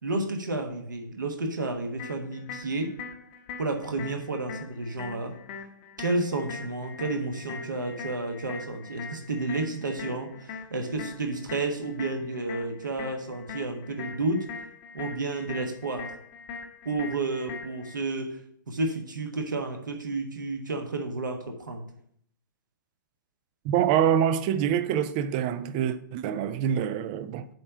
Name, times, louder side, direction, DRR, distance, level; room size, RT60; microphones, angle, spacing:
voice 1, 0.0-2.9 3.6-5.3 6.0-14.5 14.9-16.1 16.8-18.4 18.7-21.8, right 2 dB, 65° right, 1.2 m, -31 dB
sound 1, 2.0-18.0, left 5 dB, 35° left, 0.9 m, -42 dB
voice 2, 23.6-27.5, right 9 dB, 25° right, 0.3 m, -25 dB
7.7 x 3.2 x 5.4 m
figure-of-eight pair, 120°, 11 cm